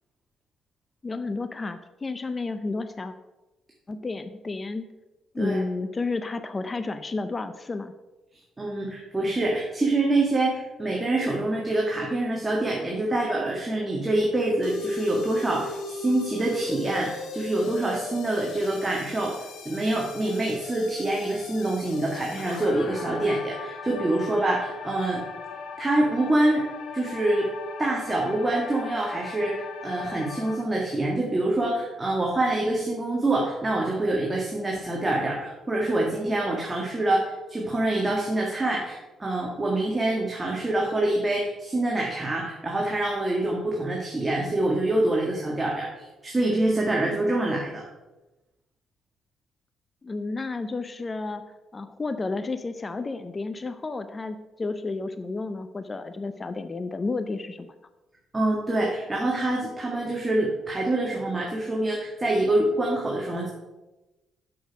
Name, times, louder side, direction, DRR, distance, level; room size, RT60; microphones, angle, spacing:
voice 1, 1.0-3.1 3.9-4.9 5.3-7.9 50.0-51.4 51.7-57.7, left 3 dB, 30° left, 10 dB, 0.5 m, -31 dB
voice 2, 8.6-25.2 25.8-26.6 26.9-27.5 27.8-47.8 58.3-63.5, right 2 dB, 20° right, -2 dB, 1.7 m, -26 dB
sound 1, 14.6-30.6, left 4 dB, 80° left, 1.0 m, -38 dB
6.6 x 6.4 x 5.2 m, 1.1 s
cardioid pair, 90°, 0 cm